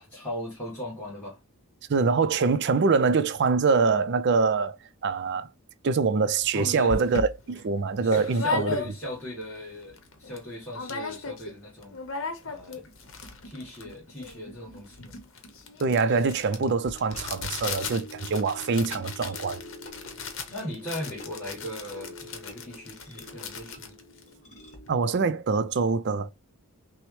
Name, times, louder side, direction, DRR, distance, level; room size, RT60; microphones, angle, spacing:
voice 1, 0.0-1.4 6.5-7.0 8.0-12.0 12.4-12.9 13.4-15.2 20.5-24.0, left 1 dB, 10° left, 1.4 m, -38 dB
voice 2, 1.9-4.8 5.0-5.5 5.8-8.8 15.8-19.6 24.9-26.3, right 4 dB, 50° right, 0.4 m, -24 dB
sound 1, 6.4-6.5 6.9-9.3 9.7-9.8 10.0-10.4 10.7-11.6 11.8-24.9, left 4 dB, 60° left, 0.9 m, -36 dB
sound 2, 16.6-25.1, left 1 dB, 30° left, 1.3 m, -47 dB
5.9 x 2.1 x 3.1 m
head